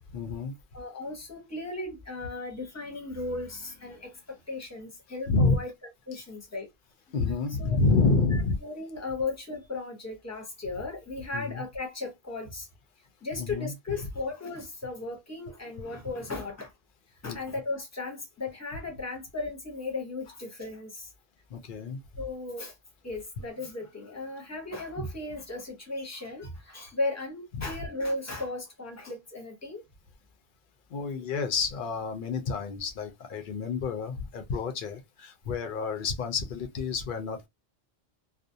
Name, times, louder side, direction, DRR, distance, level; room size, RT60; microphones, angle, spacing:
voice 1, 0.1-0.5 5.3-5.6 7.1-8.6 11.3-11.6 13.4-13.7 17.2-17.4 21.5-22.0 27.6-27.7 30.9-37.5, left 4 dB, 55° left, 0.6 m, -28 dB
voice 2, 0.7-4.1 4.5-5.7 6.1-6.7 7.6-7.8 8.0-12.7 13.2-16.7 17.2-20.9 22.2-22.7 23.0-29.8, left 2 dB, 15° left, 0.8 m, -36 dB
2.5 x 2.1 x 2.6 m
omnidirectional pair, 1.2 m